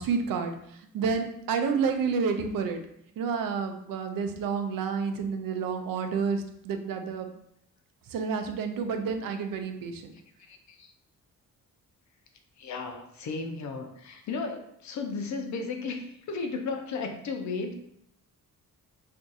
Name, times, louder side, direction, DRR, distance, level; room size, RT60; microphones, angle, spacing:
voice 1, 0.0-2.8 3.2-7.3 8.1-10.1, right 5 dB, 75° right, 6 dB, 0.5 m, -30 dB
voice 2, 10.5-10.9 12.6-17.7, left 4 dB, 55° left, 5 dB, 0.5 m, -34 dB
2.6 x 2.4 x 3.9 m, 0.73 s
wide cardioid pair, 175°, 34 cm